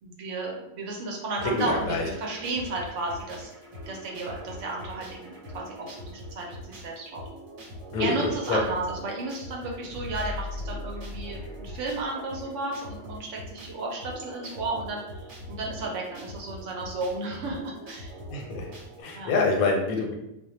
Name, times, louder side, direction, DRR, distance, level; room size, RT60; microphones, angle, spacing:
voice 1, 0.0-3.5 3.9-7.2 8.0-18.1 19.1-19.3, right 2 dB, 70° right, -1 dB, 0.9 m, -33 dB
sound 1, 1.3-19.0, equal, 90° right, 1.1 m, -43 dB
voice 2, 1.4-2.1 7.9-8.6 18.3-18.7 19.0-20.1, left 3 dB, 90° left, 1 dB, 1.1 m, -26 dB
sound 2, 9.6-12.5 12.8-12.9, left 2 dB, 55° left, 0.6 m, -38 dB
2.3 x 2.1 x 2.9 m, 0.89 s
omnidirectional pair, 1.4 m